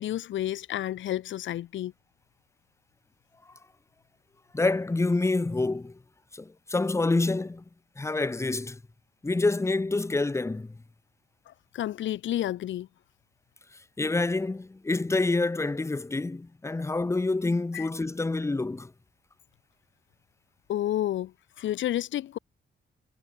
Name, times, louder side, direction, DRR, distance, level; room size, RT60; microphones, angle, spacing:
voice 1, 0.0-1.9 11.5-12.9 17.7-17.9 20.7-21.3 21.6-22.4, left 13 dB, 80° left, 0.6 m, -30 dB
voice 2, 4.5-6.0 6.3-7.6 8.0-8.8 9.2-10.8 14.0-18.9, left 3 dB, 15° left, 1.1 m, -27 dB
cardioid pair, 135°, 19 cm